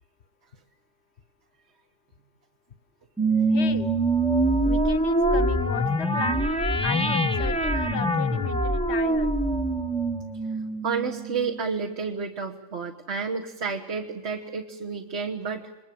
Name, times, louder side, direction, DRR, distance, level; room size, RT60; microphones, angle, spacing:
sound 1, 3.2-11.9, right 1 dB, 5° left, 1.1 m, -24 dB
voice 1, 3.5-3.9 4.6-6.5 6.8-9.3, left 8 dB, 50° left, 15 dB, 1.2 m, -35 dB
voice 2, 10.8-15.6, right 5 dB, 50° right, 2 dB, 1.5 m, -30 dB
27.5 x 21.5 x 7.7 m, 1.0 s
omnidirectional pair, 1.5 m